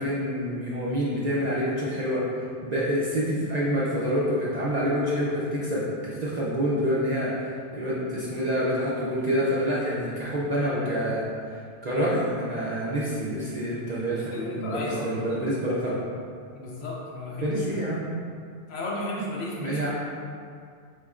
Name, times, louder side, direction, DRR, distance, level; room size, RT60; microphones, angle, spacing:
voice 1, 0.0-2.3 2.6-7.3 7.7-11.2 11.5-16.0 17.4-18.1 19.6-19.9, equal, 50° right, -7 dB, 0.5 m, -27 dB
voice 2, 14.1-15.4 16.5-17.8 18.7-19.9, left 1 dB, 70° left, -4 dB, 0.9 m, -34 dB
4.5 x 3.1 x 2.4 m, 2.2 s
omnidirectional pair, 1.2 m